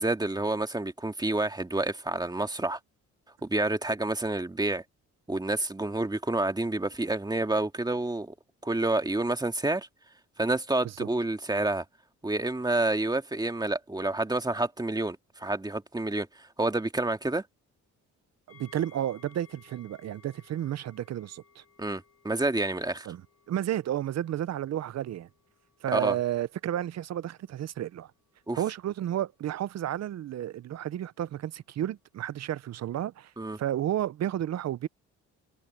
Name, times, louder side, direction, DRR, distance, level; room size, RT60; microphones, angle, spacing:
voice 1, 0.0-2.8 3.4-4.8 5.3-8.3 8.6-9.9 10.4-11.8 12.2-17.4 21.8-23.1 25.9-26.2 28.5-28.6 33.4-33.6, right 2 dB, 15° right, 2.1 m, -29 dB
sound 1, 18.5-30.2 30.5-30.6, left 6 dB, 50° left, 7.2 m, -62 dB
voice 2, 18.5-21.6 23.1-23.2 23.5-25.3 25.8-28.1 28.6-33.3 33.6-34.9, right 11 dB, 60° right, 0.8 m, -32 dB
cardioid pair, 90°, 30 cm